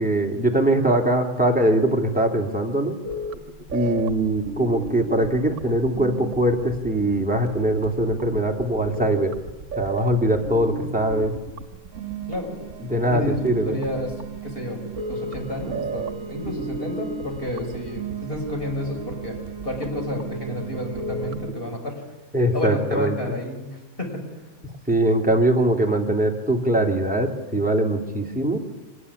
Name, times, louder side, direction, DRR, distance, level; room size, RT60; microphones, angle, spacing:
voice 1, 0.0-2.9 3.7-9.3 9.8-11.3 12.8-13.8 22.3-23.2 24.9-28.6, right 1 dB, 5° right, 1 dB, 2.7 m, -22 dB
sound 1, 3.0-21.6, right 4 dB, 60° right, 1.7 m, -34 dB
voice 2, 13.0-13.4 13.6-14.2 14.4-14.8 15.1-19.4 19.6-22.0 22.5-24.2, left 1 dB, 40° left, 2 dB, 6.1 m, -30 dB
25.5 x 19.5 x 9.8 m, 1.1 s
omnidirectional pair, 1.5 m